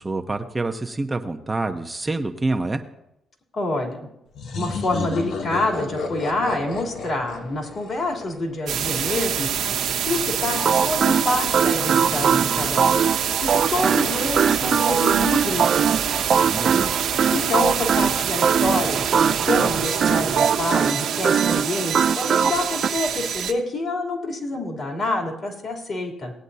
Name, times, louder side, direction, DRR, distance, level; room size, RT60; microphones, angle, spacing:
voice 1, 0.0-2.8 16.5-17.0, right 2 dB, 20° right, 5 dB, 0.9 m, -27 dB
voice 2, 3.5-4.0 4.5-9.5 10.0-15.9 17.3-26.3, left 2 dB, 50° left, 0 dB, 3.2 m, -27 dB
sound 1, 4.3-8.9, left 4 dB, 65° left, 1.1 m, -32 dB
sound 2, 8.7-23.5, right 8 dB, 75° right, 1.1 m, -26 dB
sound 3, 10.5-22.9, right 7 dB, 55° right, 0.4 m, -22 dB
18.5 x 9.0 x 2.8 m, 0.84 s
cardioid pair, 75°, 0 cm